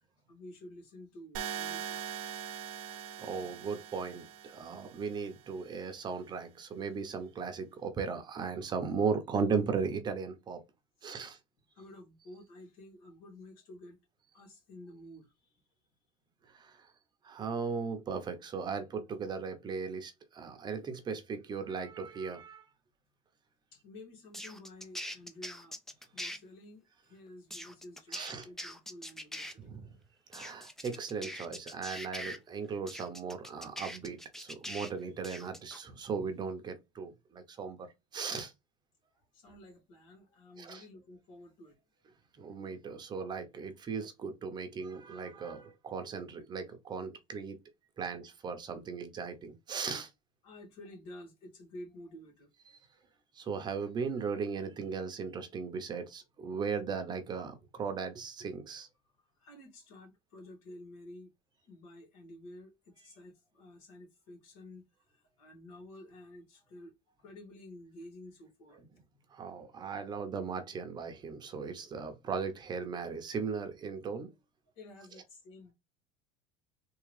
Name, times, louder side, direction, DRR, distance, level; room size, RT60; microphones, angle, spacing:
voice 1, 0.3-2.1 11.7-14.0 14.3-15.5 23.7-25.8 26.1-29.8 39.3-41.8 50.4-52.5 53.0-53.1 59.2-61.3 61.6-66.9 67.2-68.8 74.7-75.7, left 1 dB, 80° left, 2.1 m, -51 dB
sound 1, 1.3-5.4, right 9 dB, 90° right, 0.8 m, -42 dB
voice 2, 2.9-10.6 11.0-11.4 16.5-16.9 17.2-22.7 28.1-28.5 29.6-30.0 30.3-37.9 38.1-38.5 40.6-40.8 42.4-47.6 48.0-50.1 53.3-58.9 68.8-68.9 69.3-74.3, right 5 dB, 25° right, 0.7 m, -37 dB
sound 2, 24.3-26.4 27.5-29.5 30.3-32.4 32.9-34.9 35.2-35.8, equal, ahead, 0.4 m, -42 dB
3.6 x 2.8 x 3.2 m
cardioid pair, 150°, 17 cm